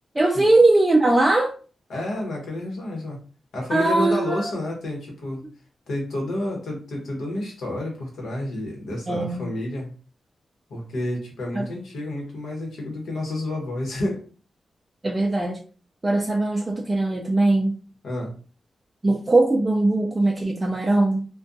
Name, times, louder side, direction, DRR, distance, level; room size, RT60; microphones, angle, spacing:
voice 1, 0.1-1.5 3.7-4.3 9.1-9.5 11.5-11.7 15.0-15.6 16.0-17.7 19.0-21.2, right 2 dB, 25° right, 1 dB, 0.4 m, -20 dB
voice 2, 1.9-3.2 3.5-5.4 5.9-9.9 10.7-14.3 18.0-18.3, left 1 dB, 90° left, 0 dB, 1.0 m, -30 dB
2.3 x 2.2 x 2.6 m, 0.37 s
cardioid pair, 85°, 0 cm